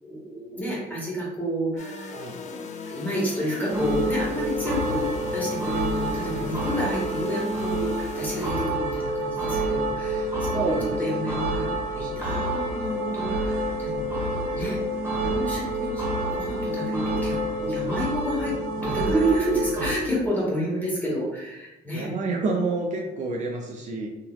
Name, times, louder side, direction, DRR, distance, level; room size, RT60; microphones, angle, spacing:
voice 1, 0.0-2.1 2.4-2.6 2.9-5.0 5.3-11.7 11.9-14.1 14.5-14.8 15.1-16.0 16.3-22.1, equal, 10° left, -5 dB, 1.5 m, -29 dB
sound 1, 1.8-8.5, left 4 dB, 45° left, 0.4 m, -38 dB
sound 2, 3.7-19.9, right 1 dB, 15° right, 1.1 m, -28 dB
voice 2, 10.5-11.4 13.4-13.8 21.9-24.1, right 3 dB, 45° right, 0 dB, 0.5 m, -29 dB
Organ, 12.2-18.2, left 10 dB, 70° left, 1.1 m, -45 dB
3.8 x 2.8 x 2.3 m, 1.0 s
cardioid pair, 110°, 17 cm